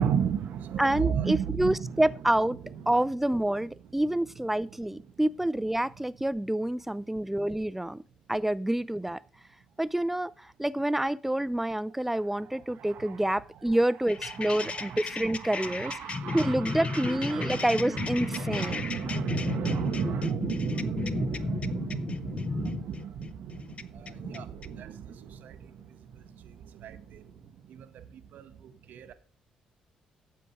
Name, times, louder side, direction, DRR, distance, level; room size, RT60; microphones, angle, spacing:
voice 1, 0.0-2.0 12.5-13.3 14.3-27.3 27.7-29.1, right 8 dB, 60° right, 0.7 m, -34 dB
voice 2, 0.8-2.6 2.9-8.0 8.3-9.2 9.8-16.0 16.3-18.8, right 1 dB, 5° right, 0.5 m, -28 dB
sound 1, 14.1-24.7, left 4 dB, 40° left, 0.7 m, -34 dB
9.1 x 7.7 x 4.8 m
figure-of-eight pair, 40°, 3 cm